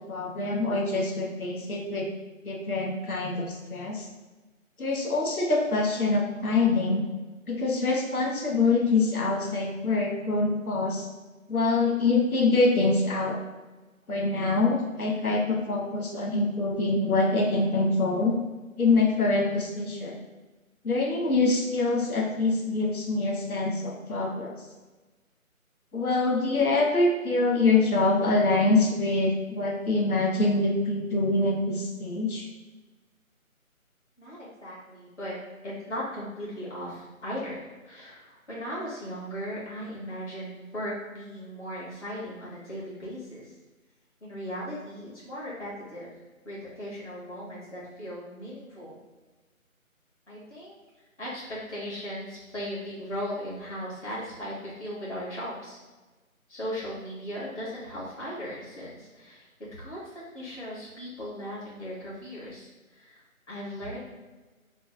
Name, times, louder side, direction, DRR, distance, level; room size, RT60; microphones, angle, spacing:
voice 1, 0.0-2.1 2.4-4.0 4.8-7.1 7.5-11.1 11.5-13.4 14.1-18.4 18.8-20.2 20.8-24.5 25.9-32.5, left 3 dB, 85° left, -1 dB, 0.9 m, -25 dB
voice 2, 34.2-35.4 35.6-37.6 37.8-43.5 44.2-46.1 46.4-49.0 50.3-50.7 51.2-55.8 56.5-59.5 59.8-63.2 63.5-64.0, equal, 55° left, -7 dB, 1.5 m, -37 dB
3.2 x 2.0 x 3.3 m, 1.2 s
figure-of-eight pair, 165°, 42 cm